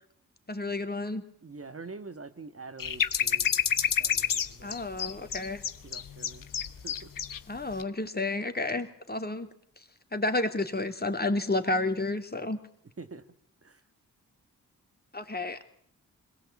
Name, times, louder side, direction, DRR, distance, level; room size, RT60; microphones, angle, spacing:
voice 1, 0.5-1.2 4.6-5.6 7.5-9.5 9.8-9.9 10.1-12.6 15.1-15.6, left 2 dB, 25° left, 7 dB, 3.1 m, -31 dB
voice 2, 1.4-3.6 4.0-4.8 5.2-5.5 5.8-6.5 6.8-7.1 13.0-13.3 13.6-13.8, right 3 dB, 40° right, 10 dB, 1.8 m, -45 dB
sound 1, 2.8-7.4 7.7-7.8, left 8 dB, 60° left, 1.2 m, -28 dB
21.5 x 17.5 x 8.5 m, 0.66 s
supercardioid pair, 40°, 37 cm